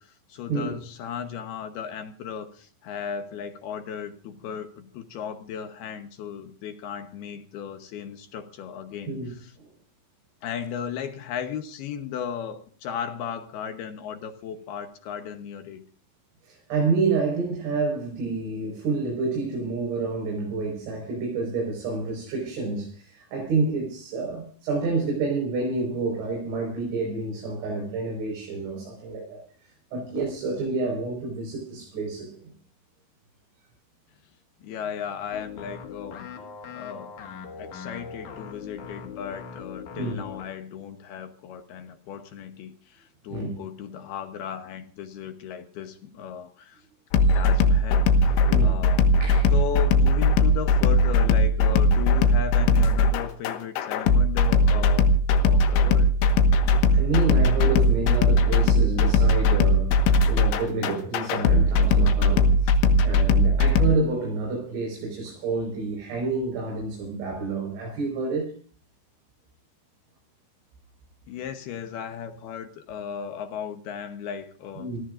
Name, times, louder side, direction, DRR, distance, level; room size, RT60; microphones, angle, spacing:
voice 1, 0.0-9.5 10.4-15.8 34.6-36.3 36.7-37.1 37.6-46.8 47.3-49.1 49.5-55.1 55.4-56.2 71.3-74.9, left 7 dB, 70° left, 2.7 m, -36 dB
voice 2, 16.4-32.5 40.0-40.2 43.3-43.5 47.3-47.4 48.2-48.8 49.2-49.5 56.9-59.9 60.3-68.5 74.8-75.0, right 3 dB, 80° right, 7.4 m, -29 dB
sound 1, 35.3-40.6, left 6 dB, 55° left, 2.5 m, -41 dB
sound 2, 47.1-63.9, left 2 dB, 90° left, 4.0 m, -19 dB
28.0 x 18.0 x 2.6 m
omnidirectional pair, 5.4 m